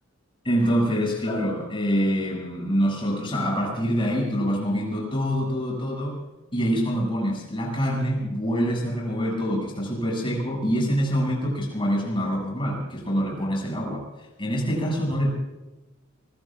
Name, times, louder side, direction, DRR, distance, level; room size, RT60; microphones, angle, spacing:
voice 1, 0.4-6.2 6.5-14.1 14.4-15.3, equal, 25° left, 0 dB, 6.9 m, -25 dB
26.5 x 21.5 x 2.5 m, 1.1 s
head